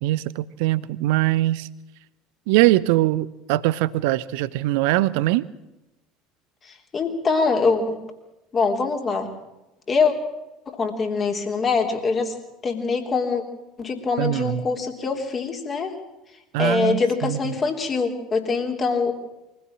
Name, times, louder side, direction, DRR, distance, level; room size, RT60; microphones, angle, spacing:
voice 1, 0.0-1.7 2.5-5.5 14.2-14.6 16.5-17.5, right 16 dB, 60° right, 19 dB, 0.7 m, -22 dB
voice 2, 6.6-8.0 8.5-9.3 9.9-10.1 10.7-12.3 12.6-13.4 13.8-16.0 16.6-19.1, left 4 dB, 30° left, 3 dB, 3.5 m, -23 dB
24.0 x 16.0 x 7.5 m, 0.96 s
figure-of-eight pair, 65°, 0 cm